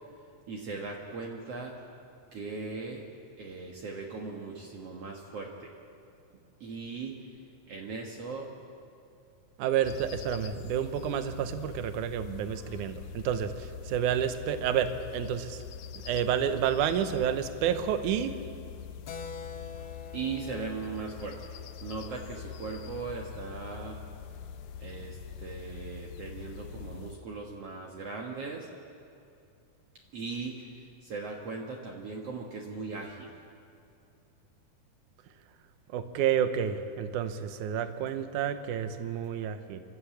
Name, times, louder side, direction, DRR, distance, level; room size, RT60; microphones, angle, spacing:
voice 1, 0.5-1.8 2.3-3.1 3.4-5.7 6.6-7.2 7.7-8.5 20.1-21.4 21.8-24.0 24.8-28.7 30.1-33.3, right 4 dB, 55° right, -1 dB, 2.3 m, -39 dB
voice 2, 9.6-15.6 16.0-18.3 35.9-39.8, right 9 dB, 75° right, 9 dB, 2.4 m, -30 dB
sound 1, 9.8-27.2, left 8 dB, 80° left, 2.1 m, -44 dB
Keyboard (musical), 19.1-23.2, left 6 dB, 65° left, 1.3 m, -46 dB
26.5 x 13.5 x 8.5 m, 2.5 s
omnidirectional pair, 3.7 m